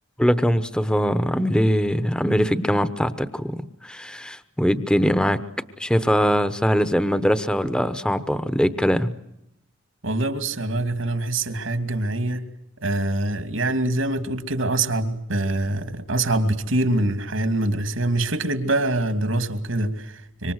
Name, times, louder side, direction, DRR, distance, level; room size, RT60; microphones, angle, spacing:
voice 1, 0.2-5.4 5.8-9.2, equal, 5° left, 12 dB, 0.9 m, -22 dB
voice 2, 10.0-12.4 12.8-20.5, right 2 dB, 75° right, 9 dB, 2.7 m, -24 dB
26.0 x 24.5 x 8.0 m, 0.86 s
head